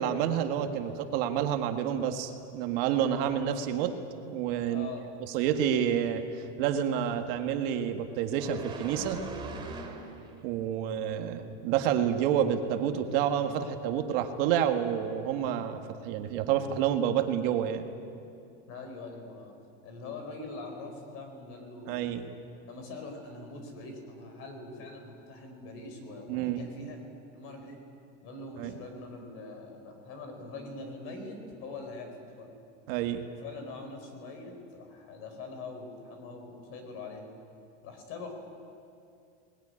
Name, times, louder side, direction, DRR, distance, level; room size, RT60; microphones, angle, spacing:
voice 1, 0.0-4.9 5.3-9.2 10.4-17.8 21.9-22.3 26.3-26.6 28.6-28.7 32.9-33.2, right 9 dB, 55° right, 6 dB, 1.7 m, -29 dB
voice 2, 4.7-5.1 18.7-19.5 19.8-22.2 22.7-27.0 27.3-27.8 28.2-32.6 33.4-37.3 37.8-38.3, left 3 dB, 40° left, 5 dB, 4.6 m, -43 dB
sound 1, 8.4-10.5 10.9-11.1, right 4 dB, 15° right, 2.4 m, -40 dB
21.5 x 20.5 x 9.8 m, 2.5 s
supercardioid pair, 170°, 34 cm